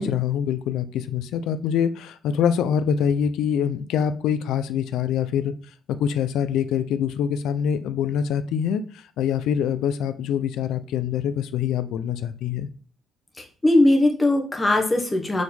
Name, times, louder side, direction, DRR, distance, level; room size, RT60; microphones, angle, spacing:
voice 1, 0.0-5.5 5.9-12.7, left 8 dB, 85° left, 0.6 m, -25 dB
voice 2, 13.4-15.4, left 1 dB, 15° left, 1.4 m, -20 dB
4.7 x 4.2 x 5.3 m
cardioid pair, 110°, 0 cm